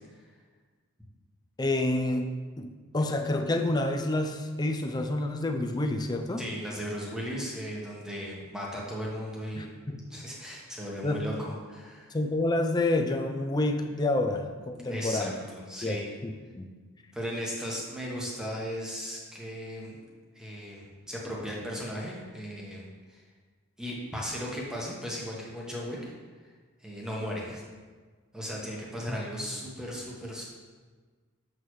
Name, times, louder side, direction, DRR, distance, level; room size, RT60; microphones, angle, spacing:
voice 1, 1.6-2.3 2.6-6.4 9.6-10.0 11.0-11.2 12.1-15.3 15.8-16.7 29.1-29.2, left 2 dB, 20° left, 4 dB, 0.4 m, -28 dB
voice 2, 6.4-9.7 10.1-12.2 14.9-16.1 17.1-20.0 20.3-23.2 23.8-26.1 26.8-27.6 28.3-30.4, equal, 5° right, -4 dB, 1.2 m, -36 dB
7.3 x 6.3 x 3.2 m, 1.5 s
head